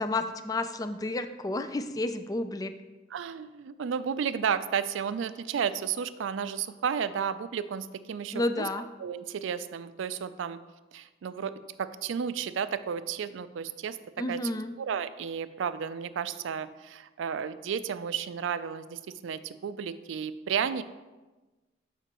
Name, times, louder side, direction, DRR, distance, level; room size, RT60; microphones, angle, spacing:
voice 1, 0.0-2.7 8.3-8.9 14.2-14.7, left 2 dB, 20° left, 10 dB, 0.3 m, -31 dB
voice 2, 3.1-8.7 9.0-10.6 10.9-11.5 11.8-14.0 14.3-14.4 14.8-20.8, right 7 dB, 80° right, 14 dB, 0.4 m, -32 dB
11.0 x 5.0 x 3.0 m, 1.2 s
head